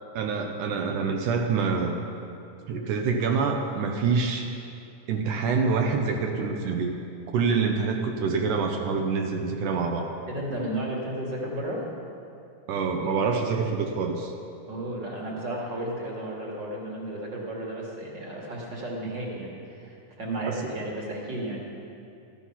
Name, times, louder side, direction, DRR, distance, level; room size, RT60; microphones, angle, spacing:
voice 1, 0.1-2.0 2.7-4.5 5.1-7.0 7.3-10.1 12.7-14.3 20.5-20.7, right 5 dB, 70° right, 3 dB, 2.2 m, -26 dB
voice 2, 10.3-11.9 14.7-21.6, right 1 dB, 35° right, -3 dB, 2.2 m, -33 dB
15.0 x 11.0 x 5.8 m, 2.6 s
omnidirectional pair, 4.1 m